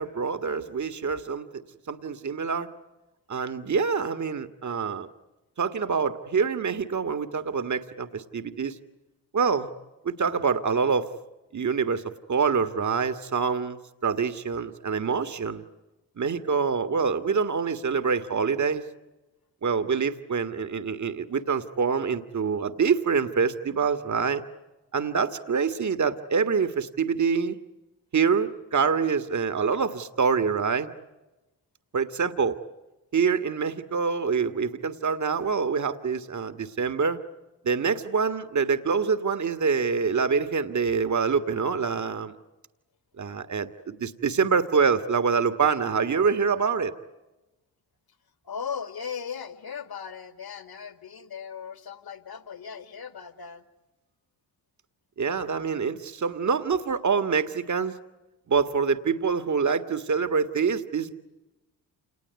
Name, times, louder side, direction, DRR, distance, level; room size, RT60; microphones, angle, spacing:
voice 1, 0.0-1.6 1.9-2.7 3.3-5.1 5.6-8.8 9.3-9.7 10.1-11.1 11.5-12.0 12.3-15.6 16.2-18.8 19.6-24.4 24.9-27.6 28.1-30.9 31.9-32.6 33.1-37.2 37.7-42.3 43.2-46.9 55.2-57.9 58.5-61.1, right 5 dB, 40° right, 10 dB, 1.8 m, -26 dB
voice 2, 48.4-53.7, left 7 dB, 50° left, 10 dB, 2.5 m, -38 dB
28.5 x 19.5 x 9.3 m, 1.1 s
hypercardioid pair, 50°, 47 cm